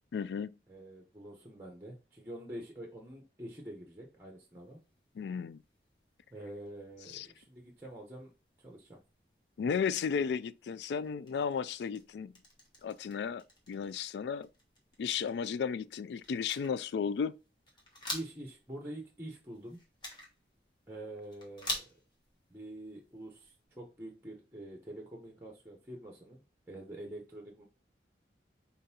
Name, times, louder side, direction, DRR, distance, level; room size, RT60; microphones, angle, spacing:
voice 1, 0.1-0.5 5.2-5.6 7.1-7.3 9.6-12.3 12.8-14.5 15.0-17.4, left 6 dB, 75° left, 0.3 m, -34 dB
voice 2, 0.7-4.8 6.3-8.3 8.6-9.0 18.1-19.8 20.9-21.9 22.5-26.4 26.7-27.6, right 1 dB, 10° right, 0.9 m, -46 dB
sound 1, 4.4-23.6, left 1 dB, 25° left, 1.3 m, -49 dB
4.4 x 3.8 x 2.7 m
head